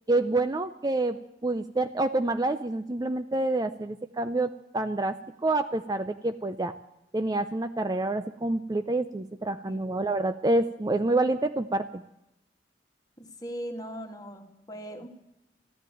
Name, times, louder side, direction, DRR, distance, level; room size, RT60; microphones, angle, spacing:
voice 1, 0.1-5.1 5.4-6.7 7.1-12.0, right 2 dB, 20° right, 10 dB, 0.5 m, -27 dB
voice 2, 13.2-15.1, equal, 20° left, 3 dB, 2.1 m, -39 dB
14.5 x 10.5 x 9.1 m, 0.88 s
head